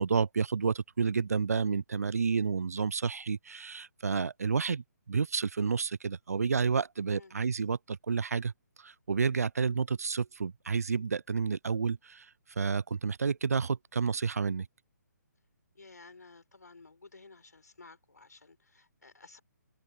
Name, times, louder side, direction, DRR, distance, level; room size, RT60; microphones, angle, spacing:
voice 1, 0.0-8.5 8.8-12.3 12.6-14.7, right 5 dB, 55° right, 0.5 m, -30 dB
voice 2, 15.8-19.4, left 3 dB, 65° left, 5.2 m, -54 dB
figure-of-eight pair, 140°, 10 cm